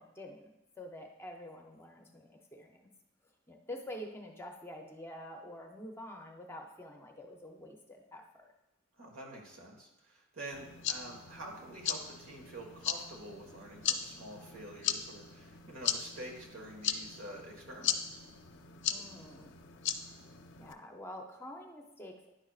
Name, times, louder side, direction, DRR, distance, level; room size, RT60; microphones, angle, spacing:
voice 1, 0.0-2.8 3.5-8.5 18.9-19.6 20.6-22.3, left 1 dB, 10° left, 2 dB, 0.6 m, -47 dB
voice 2, 9.0-18.2, right 1 dB, 85° right, 0 dB, 1.6 m, -47 dB
sound 1, 10.5-20.7, left 8 dB, 60° left, 0.5 m, -38 dB
9.8 x 6.2 x 2.4 m, 0.92 s
head